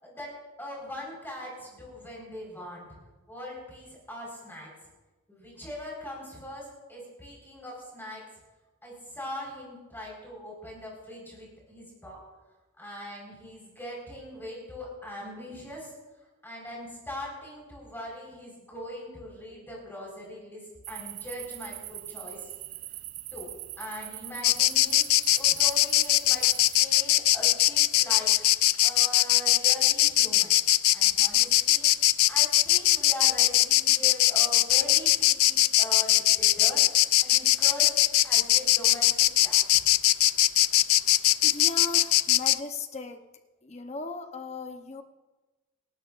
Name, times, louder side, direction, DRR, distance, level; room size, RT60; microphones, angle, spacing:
voice 1, 0.0-2.9 3.3-4.7 5.3-8.2 8.8-12.2 12.8-15.9 16.4-22.5 23.3-23.5 23.8-25.0 25.3-26.5 26.7-28.5 28.8-30.6 30.9-31.9 32.3-36.8 37.2-37.9 38.2-39.1 39.4-39.6, left 1 dB, 10° left, -3 dB, 4.5 m, -41 dB
sound 1, 20.8-26.8, right 15 dB, 80° right, 0.5 m, -41 dB
Insect, 24.4-42.6, left 15 dB, 80° left, 0.4 m, -21 dB
voice 2, 41.4-43.2 43.6-45.0, left 3 dB, 30° left, 6 dB, 0.8 m, -37 dB
27.5 x 12.5 x 2.5 m, 1.2 s
head